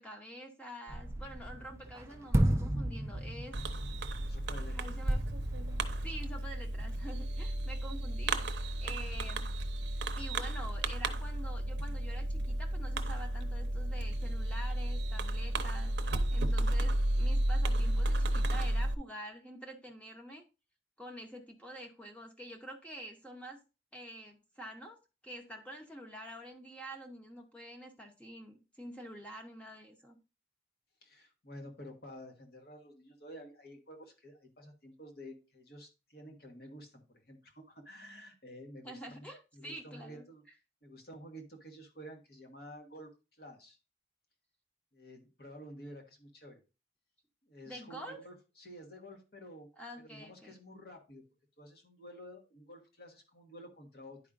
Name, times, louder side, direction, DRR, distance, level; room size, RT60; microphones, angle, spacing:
voice 1, 0.0-3.6 4.7-5.2 6.0-8.5 8.8-9.5 10.1-15.9 16.3-20.4 21.0-23.6 23.9-25.0 25.2-30.2 38.8-40.2 47.7-48.2 49.8-50.6, right 1 dB, 5° left, 2 dB, 0.8 m, -47 dB
sound 1, 0.9-6.3, right 1 dB, 15° right, 0.4 m, -34 dB
Fireworks, 3.5-19.0, right 1 dB, 75° right, 0.6 m, -33 dB
voice 2, 4.2-4.8 31.0-39.3 39.5-40.4 40.8-43.1 43.4-43.8 44.9-46.6 47.4-49.7 50.0-51.2 51.6-54.2, equal, 60° left, 2 dB, 1.5 m, -51 dB
10.5 x 4.8 x 2.5 m, 0.30 s
head